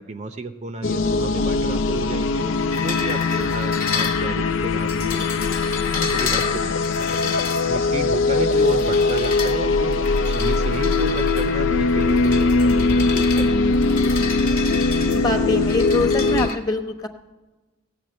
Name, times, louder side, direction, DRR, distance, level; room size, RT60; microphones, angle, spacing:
voice 1, 0.0-5.3 5.9-7.4 7.7-14.3, right 2 dB, 35° right, 8 dB, 0.6 m, -32 dB
sound 1, 0.8-16.5, left 3 dB, 85° left, 0.5 m, -21 dB
sound 2, 2.7-16.5, left 7 dB, 45° left, 1.2 m, -31 dB
voice 2, 15.1-17.1, left 2 dB, 20° left, 4 dB, 0.9 m, -24 dB
17.0 x 7.2 x 8.7 m, 1.2 s
head